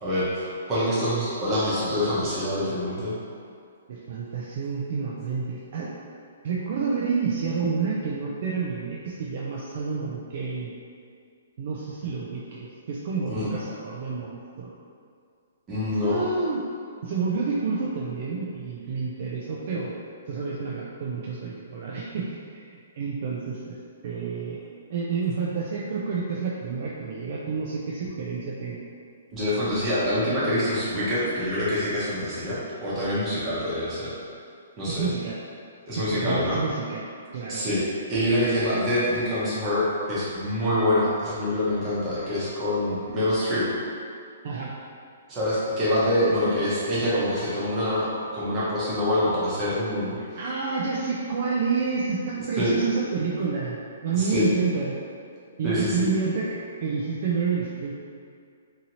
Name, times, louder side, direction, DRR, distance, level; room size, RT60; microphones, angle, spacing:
voice 1, 0.0-3.1 13.3-13.5 15.7-16.2 29.3-34.1 34.8-35.1 35.9-36.6 37.5-37.8 38.1-43.7 45.3-48.1 48.3-50.2 52.6-52.7 54.1-54.4 55.6-56.1, left 1 dB, 15° right, -10 dB, 0.8 m, -25 dB
voice 2, 3.9-5.9 6.4-10.7 11.6-14.7 16.0-16.6 17.0-19.9 20.3-23.8 24.0-24.6 24.9-28.8 34.9-35.4 35.9-37.1 37.3-37.7 44.4-44.7 50.4-54.9 55.6-56.5 56.8-57.9, right 5 dB, 45° right, -5 dB, 0.3 m, -29 dB
2.7 x 2.7 x 2.9 m, 2.3 s
hypercardioid pair, 170°, 0 cm